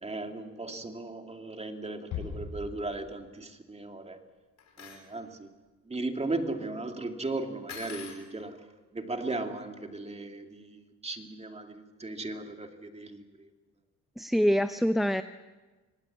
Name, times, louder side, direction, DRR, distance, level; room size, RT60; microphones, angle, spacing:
voice 1, 0.0-4.2 4.8-5.5 5.9-8.7 8.9-13.5, right 2 dB, 20° right, 5 dB, 2.4 m, -37 dB
Bass drum, 2.1-3.5, left 6 dB, 85° left, 7.1 m, -40 dB
sound 1, 4.6-5.0 7.7-8.2, left 6 dB, 60° left, 5.3 m, -43 dB
voice 2, 14.2-15.2, equal, ahead, 10 dB, 0.7 m, -25 dB
25.0 x 19.0 x 7.4 m, 1.2 s
cardioid pair, 90°, 30 cm